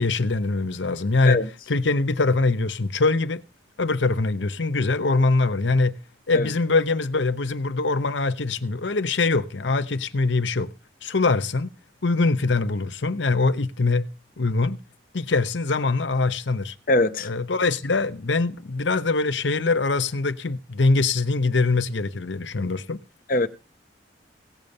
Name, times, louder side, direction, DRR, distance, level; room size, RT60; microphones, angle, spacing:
voice 1, 0.0-3.4 3.8-6.0 6.3-10.7 11.0-11.7 12.0-14.1 14.4-14.8 15.1-16.7 17.2-23.0, left 3 dB, 75° left, 0.9 m, -23 dB
voice 2, 16.9-17.3 23.3-23.5, left 2 dB, 45° left, 0.8 m, -21 dB
17.0 x 7.2 x 6.6 m
head